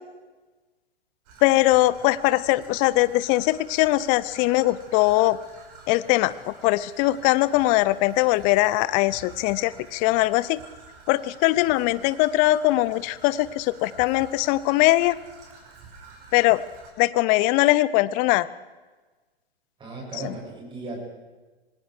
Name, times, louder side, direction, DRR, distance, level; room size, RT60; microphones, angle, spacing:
Traffic noise roadway noise / Trickle dribble, 1.2-16.9, right 4 dB, 40° right, 5.3 m, -48 dB
voice 1, 1.4-5.4 5.9-10.6 11.1-15.2 16.3-16.6 17.0-18.5 20.2-20.3, left 18 dB, 25° left, 17 dB, 0.7 m, -21 dB
voice 2, 19.8-21.0, right 2 dB, 15° right, -2 dB, 7.8 m, -36 dB
27.0 x 20.0 x 4.9 m, 1.3 s
figure-of-eight pair, 105°, 31 cm